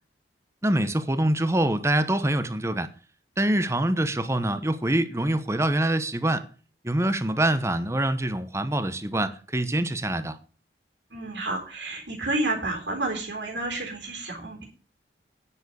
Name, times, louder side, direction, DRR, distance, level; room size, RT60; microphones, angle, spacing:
voice 1, 0.6-2.9 3.4-6.4 6.8-10.4, right 1 dB, 15° right, 0.9 m, -25 dB
voice 2, 11.1-14.6, right 2 dB, 90° right, 3.7 m, -30 dB
10.0 x 7.2 x 6.9 m
head